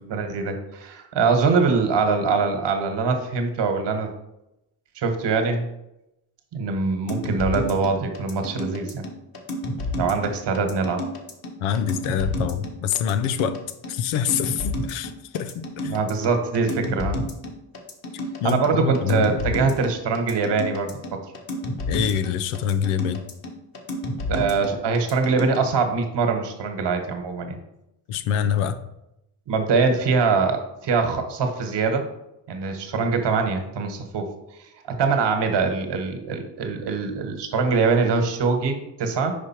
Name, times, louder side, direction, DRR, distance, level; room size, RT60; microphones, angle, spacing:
voice 1, 0.0-4.1 4.9-5.7 6.5-9.1 10.0-11.0 15.9-17.2 18.4-21.2 24.3-27.6 29.5-32.0 32.5-34.3 34.9-39.3, right 4 dB, 55° right, 6 dB, 1.4 m, -23 dB
sound 1, 7.1-25.6, left 1 dB, 45° left, 1.6 m, -30 dB
voice 2, 11.6-13.6 13.9-16.0 18.4-19.3 21.9-23.2 28.1-28.8, left 8 dB, 80° left, 11 dB, 0.7 m, -25 dB
5.2 x 4.9 x 4.4 m, 0.87 s
supercardioid pair, 60°, 49 cm